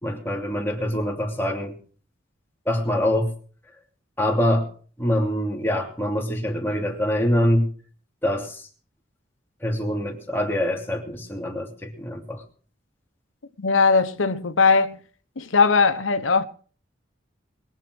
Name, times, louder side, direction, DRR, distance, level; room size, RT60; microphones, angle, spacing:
voice 1, 0.0-1.8 2.7-3.3 4.2-4.7 5.0-7.7 8.2-8.7 9.6-12.4, equal, 10° left, 2.9 m, -24 dB
voice 2, 13.6-15.0 15.4-16.5, left 4 dB, 90° left, 1.0 m, -19 dB
22.0 x 7.4 x 6.2 m
head